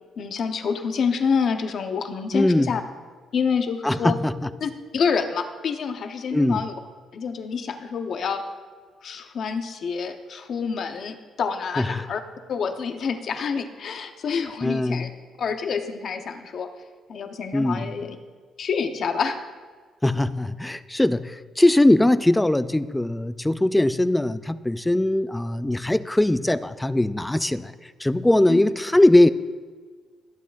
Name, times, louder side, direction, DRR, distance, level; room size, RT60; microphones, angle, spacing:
voice 1, 0.2-2.8 3.3-4.2 4.6-6.7 7.1-8.4 9.0-12.2 12.5-15.1 15.4-16.7 17.1-18.2 18.6-19.4 28.5-28.6, left 6 dB, 60° left, 7 dB, 0.9 m, -27 dB
voice 2, 2.3-2.8 3.8-4.5 6.3-6.6 11.8-12.1 14.6-15.1 17.5-17.9 20.0-29.3, left 1 dB, 10° left, 14 dB, 0.3 m, -21 dB
21.5 x 7.9 x 2.5 m, 1.5 s
cardioid pair, 90°, 0 cm